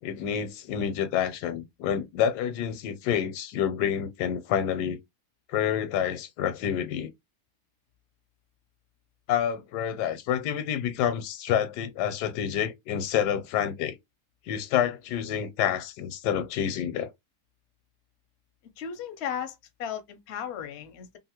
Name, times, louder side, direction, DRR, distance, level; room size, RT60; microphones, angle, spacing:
voice 1, 0.0-5.0 5.5-7.1 9.3-14.0 14.5-17.1, left 9 dB, 85° left, 1.2 m, -28 dB
voice 2, 18.8-21.2, left 8 dB, 65° left, 0.6 m, -35 dB
2.8 x 2.5 x 2.8 m
omnidirectional pair, 1.7 m